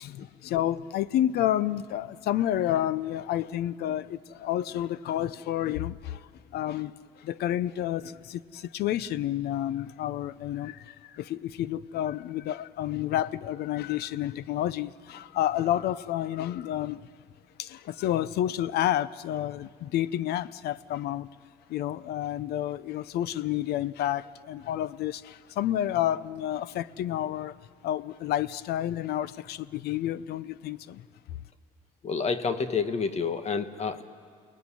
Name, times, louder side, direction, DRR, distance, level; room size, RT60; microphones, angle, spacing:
voice 1, 0.0-17.0 17.6-21.3 21.7-27.6 27.8-31.1, left 12 dB, 70° left, 0.7 m, -30 dB
voice 2, 32.0-34.0, left 5 dB, 40° left, 1.4 m, -29 dB
29.5 x 19.5 x 9.9 m
cardioid pair, 110°, 17 cm